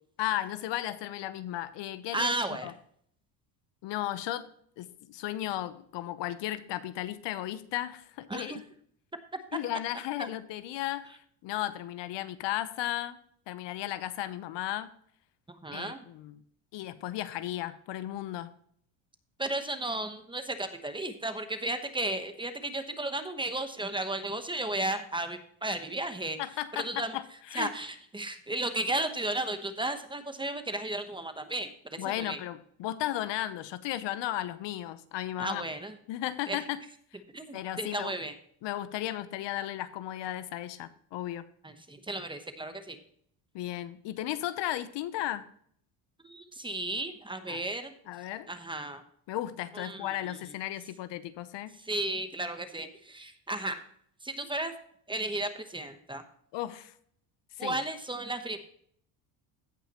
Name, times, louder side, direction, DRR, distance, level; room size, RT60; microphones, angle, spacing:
voice 1, 0.2-2.7 3.8-4.5 4.8-8.6 9.5-13.2 13.5-14.9 15.7-16.4 16.7-18.5 26.4-27.2 27.5-27.7 32.0-35.7 36.1-36.8 37.5-38.1 38.6-41.4 43.5-45.5 47.5-47.6 48.1-48.5 49.3-51.8 56.5-56.9 57.6-57.8, left 13 dB, 65° left, 14 dB, 0.8 m, -35 dB
voice 2, 2.1-2.7 8.3-8.6 9.3-9.6 10.2-10.3 15.5-16.0 19.4-26.4 26.7-27.2 27.5-32.4 35.4-36.0 36.5-36.6 37.3-38.3 41.6-43.0 46.2-47.9 48.5-49.0 49.7-50.5 51.7-53.8 54.2-54.7 55.1-56.2 57.6-58.6, right 2 dB, 10° right, 8 dB, 0.9 m, -34 dB
16.5 x 5.7 x 2.9 m, 0.63 s
cardioid pair, 115°, 47 cm